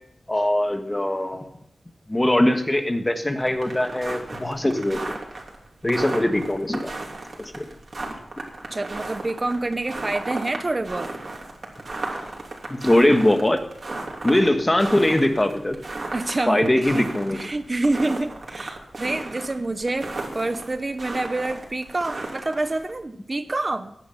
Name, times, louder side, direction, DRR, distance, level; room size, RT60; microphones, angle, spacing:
voice 1, 0.3-1.5 2.1-5.2 5.8-6.9 7.4-7.7 12.7-13.6 14.2-15.8 16.5-17.4, left 1 dB, 20° left, 6 dB, 1.5 m, -21 dB
sound 1, 3.4-22.9, right 2 dB, 55° right, 3.1 m, -35 dB
voice 2, 8.7-11.1 16.1-23.9, right 2 dB, 35° right, 9 dB, 0.9 m, -27 dB
16.5 x 10.5 x 5.8 m, 0.72 s
wide cardioid pair, 100°, 0 cm